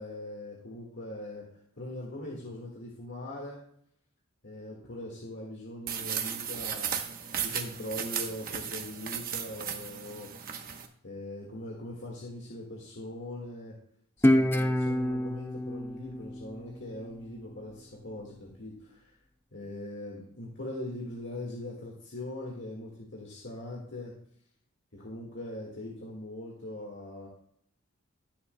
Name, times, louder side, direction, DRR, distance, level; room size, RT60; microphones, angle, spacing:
voice 1, 0.0-1.5 1.8-3.6 4.4-10.6 11.0-13.8 14.2-19.2 19.5-24.1 24.9-27.3, left 1 dB, 55° left, -3 dB, 1.8 m, -41 dB
sound 1, 5.9-10.9, right 8 dB, 40° right, 0.9 m, -35 dB
Guitar, 14.2-17.4, left 1 dB, 10° left, 0.4 m, -27 dB
18.5 x 7.1 x 2.2 m, 0.66 s
head